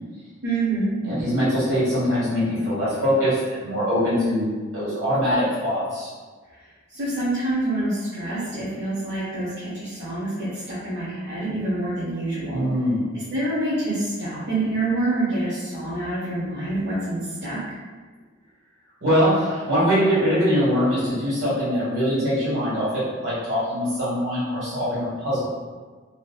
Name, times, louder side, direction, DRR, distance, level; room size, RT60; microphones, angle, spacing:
voice 1, 0.4-0.9 6.9-12.6 13.3-17.6, right 2 dB, 55° right, -11 dB, 0.6 m, -26 dB
voice 2, 1.0-6.1 12.5-13.0 19.0-25.4, equal, 80° right, -10 dB, 1.5 m, -23 dB
2.6 x 2.1 x 2.3 m, 1.4 s
head